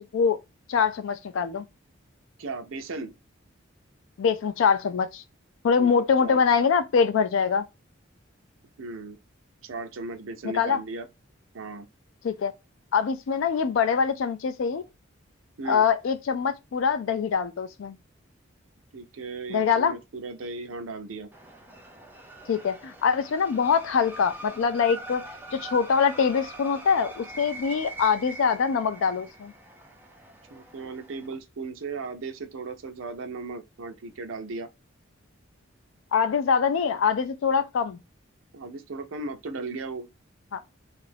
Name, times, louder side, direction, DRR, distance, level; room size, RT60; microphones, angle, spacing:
voice 1, 0.7-1.6 4.2-5.2 5.6-7.6 10.5-10.8 12.2-12.5 12.9-14.8 15.7-18.0 19.5-19.9 22.5-25.3 25.5-29.5 36.1-38.0 40.5-40.6, left 6 dB, 75° left, 0.3 m, -24 dB
voice 2, 2.4-3.1 5.8-5.9 6.2-6.4 8.8-9.2 9.6-11.1 11.5-11.9 15.6-15.9 18.9-21.3 30.5-34.7 38.5-40.1, right 3 dB, 80° right, 0.5 m, -36 dB
sound 1, 21.3-31.3, right 2 dB, 10° right, 0.4 m, -43 dB
2.6 x 2.4 x 3.3 m
head